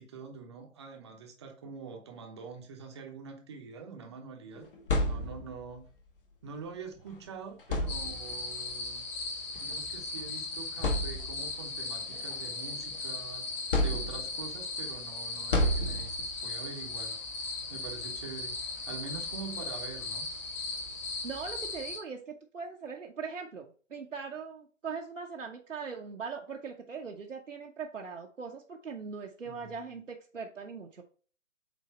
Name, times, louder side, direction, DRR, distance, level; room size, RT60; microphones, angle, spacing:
voice 1, 0.0-4.7 5.0-5.9 6.4-9.1 9.6-13.5 13.8-17.2 17.7-20.3 29.4-29.8, right 5 dB, 20° right, 3 dB, 0.9 m, -45 dB
sound 1, 4.6-5.7 7.0-7.1 7.6-8.5 9.6-9.7 10.3-10.4 10.8-11.6 12.1-13.1 13.7-14.5 15.5-16.4, left 1 dB, 45° left, 1.4 m, -31 dB
sound 2, 7.9-22.0, left 3 dB, 25° left, 1.5 m, -38 dB
voice 2, 21.2-31.0, right 5 dB, 70° right, 1 dB, 1.1 m, -40 dB
8.2 x 2.8 x 4.2 m, 0.41 s
figure-of-eight pair, 145°, 38 cm